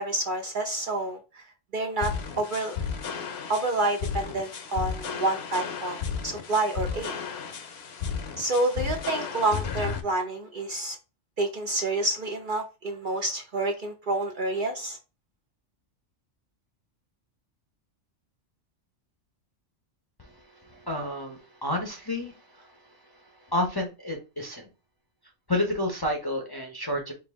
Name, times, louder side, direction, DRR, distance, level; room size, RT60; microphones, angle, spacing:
voice 1, 0.0-1.5 1.7-2.8 3.5-6.0 6.2-7.1 8.4-11.0 11.4-15.0, right 2 dB, 55° right, 3 dB, 0.6 m, -28 dB
sound 1, 2.0-10.0, left 6 dB, 60° left, 0.9 m, -34 dB
voice 2, 20.2-24.7 25.5-27.1, left 1 dB, 25° left, 1 dB, 0.5 m, -31 dB
4.5 x 2.6 x 3.4 m, 0.29 s
omnidirectional pair, 1.3 m